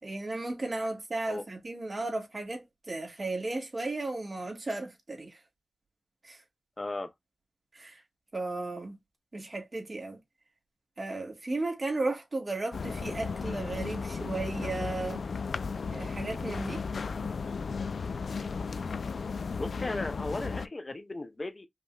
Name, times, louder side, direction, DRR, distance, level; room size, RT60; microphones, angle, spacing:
voice 1, 0.0-5.4 6.2-6.4 7.7-8.0 8.3-9.0 9.3-10.2 11.0-15.2 15.9-16.9, right 2 dB, 45° right, 1.8 m, -35 dB
voice 2, 6.8-7.1 19.6-21.7, left 2 dB, 40° left, 0.7 m, -36 dB
sound 1, 12.7-20.7, left 5 dB, 85° left, 0.3 m, -35 dB
5.3 x 2.7 x 2.4 m
wide cardioid pair, 70°, 0 cm